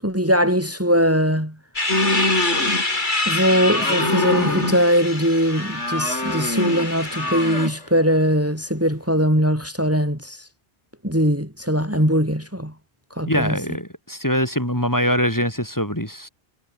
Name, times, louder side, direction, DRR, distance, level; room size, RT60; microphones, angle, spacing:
voice 1, 0.0-1.6 3.3-10.5 11.0-12.7 13.1-13.6, equal, 10° right, 6.5 m, -21 dB
sound 1, 1.8-7.7, left 2 dB, 45° left, 3.4 m, -26 dB
sound 2, 1.9-3.1 3.4-5.0 5.4-7.8, left 1 dB, 80° left, 7.1 m, -25 dB
voice 2, 13.3-16.3, equal, 15° left, 8.1 m, -23 dB
omnidirectional pair, 1.2 m